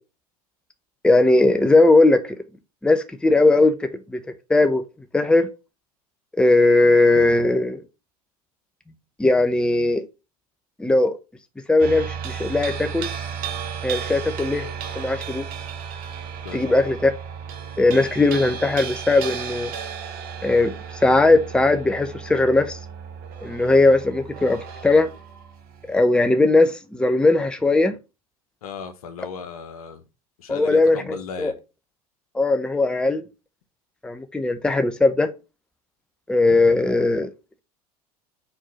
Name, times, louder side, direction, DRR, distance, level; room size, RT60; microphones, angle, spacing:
voice 1, 1.0-2.3 2.8-4.2 4.5-4.8 5.1-5.5 6.3-7.8 9.2-10.1 10.8-11.1 11.7-13.1 13.8-14.7 15.0-15.4 16.5-17.1 17.8-19.7 20.4-20.7 21.0-22.8 23.4-25.1 25.8-27.9 30.5-31.5 32.3-33.2 34.0-35.3 36.3-37.3, left 2 dB, 5° left, 0.7 m, -18 dB
sound 1, 11.8-26.0, right 7 dB, 50° right, 1.2 m, -34 dB
voice 2, 16.4-16.8 28.6-30.0 30.4-31.5, left 6 dB, 70° left, 1.3 m, -36 dB
4.5 x 4.5 x 5.6 m
figure-of-eight pair, 80°, 20 cm